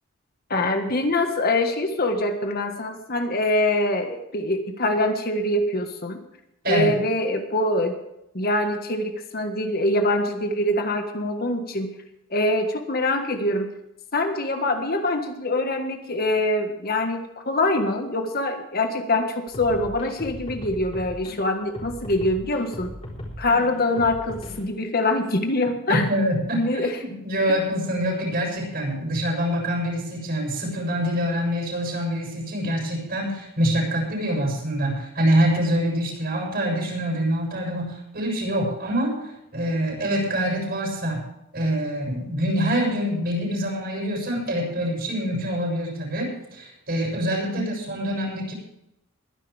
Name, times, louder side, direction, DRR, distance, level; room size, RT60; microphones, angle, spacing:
voice 1, 0.5-6.2 6.6-8.0 8.3-11.9 12.3-13.7 14.1-22.9 23.4-26.0 26.5-27.0 47.5-47.8, left 2 dB, 45° left, 5 dB, 1.6 m, -24 dB
sound 1, 19.5-21.3 21.7-24.7, equal, 30° left, 4.0 m, -37 dB
voice 2, 25.9-26.7 27.0-39.1 39.5-41.2 41.5-48.5, equal, 50° right, -1 dB, 7.1 m, -25 dB
22.0 x 10.5 x 3.5 m, 0.85 s
head